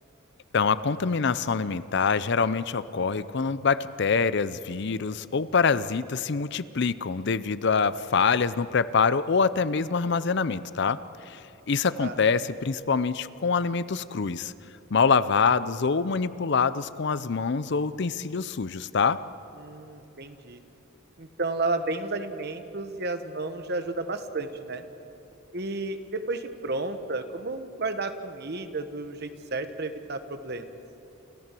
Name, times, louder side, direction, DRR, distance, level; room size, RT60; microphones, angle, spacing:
voice 1, 0.5-11.0 11.3-11.4 11.7-14.5 14.9-19.2, left 5 dB, 55° left, 16 dB, 0.6 m, -25 dB
voice 2, 19.5-20.6 21.2-24.8 25.5-30.7, right 3 dB, 55° right, 9 dB, 1.3 m, -32 dB
28.0 x 14.5 x 7.6 m, 2.9 s
head